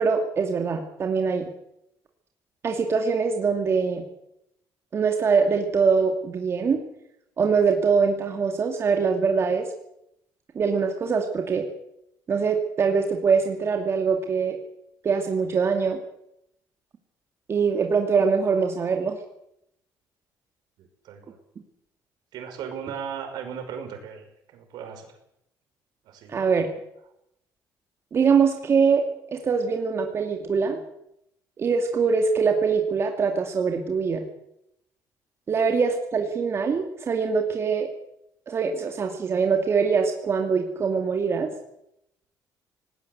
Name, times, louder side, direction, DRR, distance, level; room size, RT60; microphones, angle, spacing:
voice 1, 0.0-1.5 2.6-4.0 4.9-6.8 7.4-9.7 10.5-11.7 12.3-14.6 15.0-16.0 17.5-19.2 26.3-26.7 28.1-30.8 31.6-34.2 35.5-37.9 38.5-41.5, right 5 dB, 35° right, 3 dB, 2.5 m, -23 dB
voice 2, 20.8-21.4 22.3-24.3 24.5-25.1 26.1-26.3, right 7 dB, 75° right, 6 dB, 5.6 m, -37 dB
19.0 x 18.0 x 8.2 m, 0.79 s
cardioid pair, 125°, 7 cm